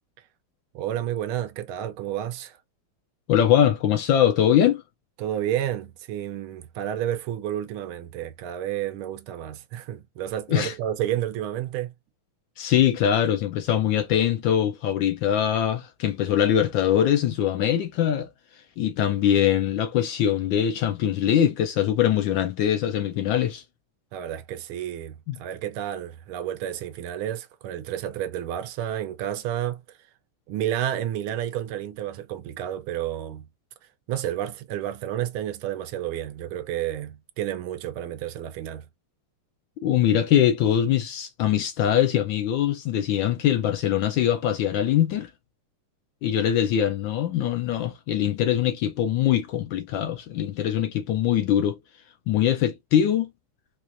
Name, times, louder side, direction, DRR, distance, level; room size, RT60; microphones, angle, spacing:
voice 1, 0.7-2.6 5.2-11.9 24.1-30.0 30.5-33.5 34.1-38.9, right 11 dB, 75° right, 1.4 m, -31 dB
voice 2, 3.3-4.8 10.5-10.7 12.6-18.3 18.8-23.6 25.3-25.4 39.8-45.3 46.2-51.8 52.3-53.3, left 10 dB, 75° left, 1.1 m, -22 dB
4.6 x 2.4 x 2.5 m
omnidirectional pair, 2.4 m